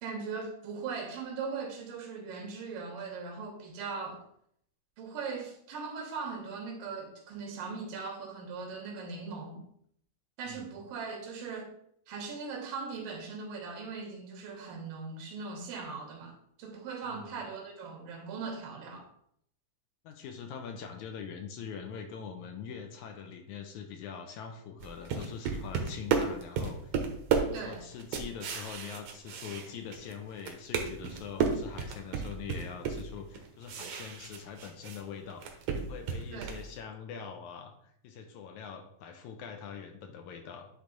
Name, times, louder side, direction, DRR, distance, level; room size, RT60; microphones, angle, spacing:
voice 1, 0.0-4.2 5.0-9.6 10.4-11.7 12.1-19.1 27.5-27.9 36.3-36.5, right 5 dB, 85° right, 3 dB, 2.8 m, -39 dB
voice 2, 20.1-27.0 27.4-40.7, left 6 dB, 75° left, 4 dB, 1.9 m, -43 dB
sound 1, 24.8-30.1 30.4-35.0 35.3-36.7, right 6 dB, 70° right, 1.5 m, -32 dB
9.9 x 3.4 x 3.9 m, 0.69 s
omnidirectional pair, 3.8 m